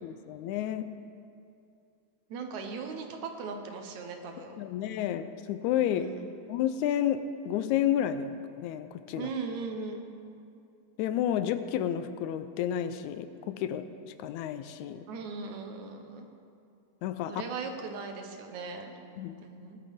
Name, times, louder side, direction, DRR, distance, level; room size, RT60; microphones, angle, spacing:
voice 1, 0.0-1.0 4.6-6.1 6.5-9.3 11.0-13.9 14.2-15.1 17.0-17.4 19.2-19.4, left 10 dB, 80° left, 11 dB, 1.9 m, -31 dB
voice 2, 2.3-4.6 5.9-6.3 9.2-10.1 15.1-16.3 17.3-18.9 19.4-19.8, right 4 dB, 75° right, 4 dB, 2.4 m, -38 dB
19.0 x 12.0 x 3.6 m, 2.5 s
omnidirectional pair, 3.4 m